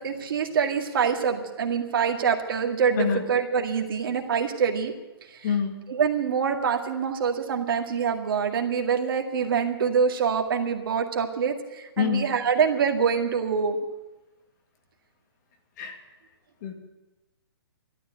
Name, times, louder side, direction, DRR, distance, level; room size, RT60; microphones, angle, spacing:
voice 1, 0.0-4.9 5.4-5.6 5.9-13.8, right 6 dB, 55° right, 3 dB, 2.1 m, -25 dB
voice 2, 5.4-5.8 12.0-12.3 15.8-15.9 16.6-16.7, left 7 dB, 45° left, 4 dB, 2.3 m, -26 dB
13.0 x 12.5 x 8.1 m, 1.1 s
hypercardioid pair, 145°, 14 cm